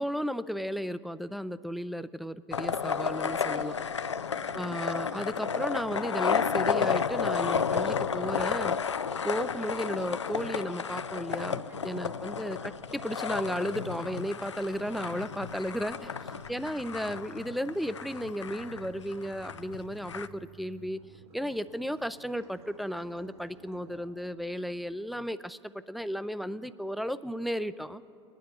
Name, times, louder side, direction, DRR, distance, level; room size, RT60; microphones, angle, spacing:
voice 1, 0.0-3.8 4.5-8.8 9.2-16.1 16.5-21.0 21.3-28.0, equal, ahead, 13 dB, 0.5 m, -34 dB
sound 1, 2.5-20.3, left 6 dB, 85° left, 0.4 m, -32 dB
voice 2, 4.0-4.7 11.7-12.3 15.8-16.6 24.8-24.9, right 6 dB, 30° right, 0 dB, 1.2 m, -55 dB
sound 2, 13.6-20.9, right 1 dB, 55° right, 1.9 m, -57 dB
sound 3, 18.6-20.5 20.9-24.0, right 3 dB, 75° right, 3.4 m, -56 dB
24.0 x 9.7 x 2.9 m, 2.5 s
figure-of-eight pair, 70°, 15 cm